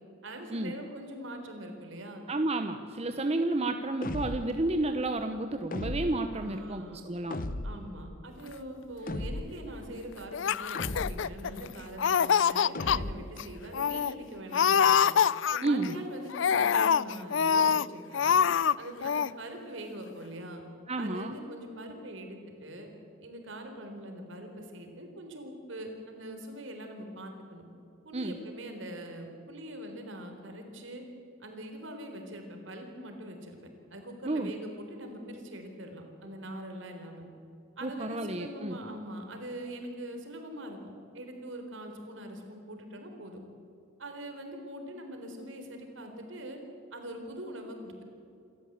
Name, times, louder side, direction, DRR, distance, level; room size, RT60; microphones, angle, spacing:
voice 1, 0.2-2.2 6.3-7.0 7.6-15.1 15.5-18.4 18.8-20.6 21.0-22.9 23.2-27.7 28.0-31.0 31.4-33.6 33.9-37.2 37.8-40.8 41.1-43.4 44.0-46.6 46.9-48.0, right 1 dB, 70° right, 4 dB, 4.0 m, -43 dB
voice 2, 2.3-7.4 15.6-15.9 20.9-21.3 28.1-28.4 34.2-34.5 37.8-38.8, right 2 dB, 30° right, 7 dB, 0.9 m, -31 dB
sound 1, 4.0-4.7 5.7-6.4 7.3-7.9 9.1-9.7 10.7-11.4 12.7-13.4, left 1 dB, 45° left, 0.9 m, -36 dB
Laughter, 10.3-11.7 12.0-13.0 13.4-13.5 13.7-14.1 14.5-15.9 16.3-17.8 18.1-18.7 19.0-19.3, left 7 dB, 65° left, 0.4 m, -25 dB
27.5 x 13.5 x 8.2 m, 2.8 s
head